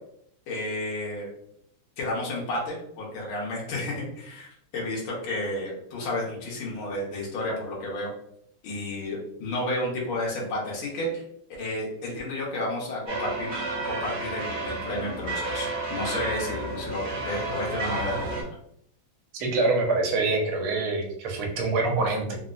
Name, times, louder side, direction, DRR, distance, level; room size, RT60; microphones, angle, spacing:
voice 1, 0.5-1.3 2.0-8.1 8.6-11.2 11.5-13.6 13.8-18.3, left 1 dB, 80° left, -3 dB, 1.7 m, -31 dB
sound 1, 13.1-18.4, right 2 dB, 40° right, 0.9 m, -31 dB
voice 2, 19.3-22.4, right 3 dB, 80° right, 1 dB, 1.5 m, -25 dB
3.9 x 2.0 x 2.4 m, 0.73 s
omnidirectional pair, 2.3 m